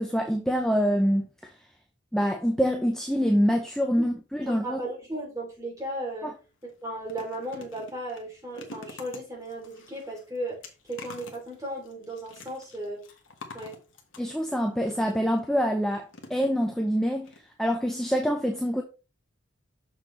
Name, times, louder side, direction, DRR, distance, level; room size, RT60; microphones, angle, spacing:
voice 1, 0.0-1.5 2.1-4.8 14.2-17.3 17.6-18.8, equal, 5° left, 0.6 m, -25 dB
voice 2, 4.4-6.3 6.6-13.1 13.5-13.8, right 1 dB, 15° right, 3.0 m, -36 dB
sound 1, 6.1-6.2 6.6-15.4 16.1-16.9 17.2-17.4 17.6-17.7, left 3 dB, 70° left, 1.4 m, -48 dB
6.5 x 6.3 x 3.2 m
head